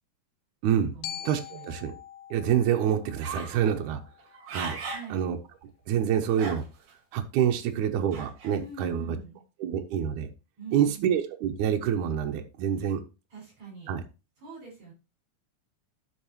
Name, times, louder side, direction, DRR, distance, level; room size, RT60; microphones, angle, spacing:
voice 1, 0.6-0.9 1.2-1.9 2.3-4.0 4.5-4.8 5.1-5.4 5.9-6.6 7.1-9.2 9.6-10.3 10.7-13.0 13.9-14.0, right 9 dB, 80° right, 2.2 m, -27 dB
Glockenspiel, 1.0-5.2, left 11 dB, 80° left, 2.1 m, -44 dB
sound 1, 3.2-3.6 4.2-5.1 5.6-5.7 6.3-6.9 8.1-8.6, right 4 dB, 65° right, 3.1 m, -37 dB
voice 2, 4.9-5.3 8.6-9.4 10.6-11.1 13.3-13.9 14.4-14.9, right 5 dB, 45° right, 6.5 m, -43 dB
11.5 x 5.5 x 2.9 m
omnidirectional pair, 3.5 m